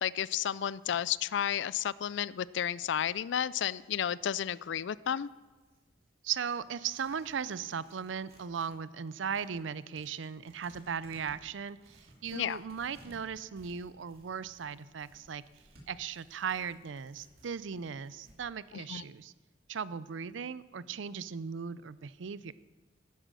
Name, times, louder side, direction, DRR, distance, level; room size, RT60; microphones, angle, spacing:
voice 1, 0.0-5.3 12.3-12.6 18.7-19.0, left 9 dB, 75° left, 20 dB, 0.4 m, -32 dB
Tearing, 5.2-8.8 9.1-18.4, right 1 dB, 55° right, 2.8 m, -60 dB
voice 2, 6.2-15.4 15.9-19.3 19.7-22.5, right 7 dB, 90° right, 18 dB, 0.5 m, -37 dB
11.5 x 10.0 x 6.2 m, 1.3 s
head